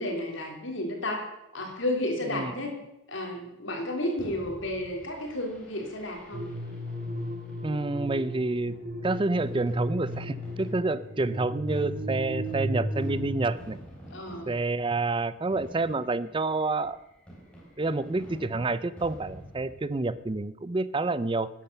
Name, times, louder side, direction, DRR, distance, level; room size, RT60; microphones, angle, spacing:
voice 1, 0.0-2.7 3.1-6.4 14.1-14.6, left 1 dB, 55° left, 2 dB, 3.1 m, -32 dB
Fireworks, 4.2-20.3, equal, 5° left, 3.4 m, -49 dB
sound 1, 6.3-13.3, equal, 40° right, 2.8 m, -35 dB
voice 2, 7.6-8.7 9.0-13.8 14.5-17.0 17.8-21.5, right 3 dB, 25° right, 17 dB, 0.4 m, -28 dB
12.5 x 10.0 x 6.7 m, 0.91 s
head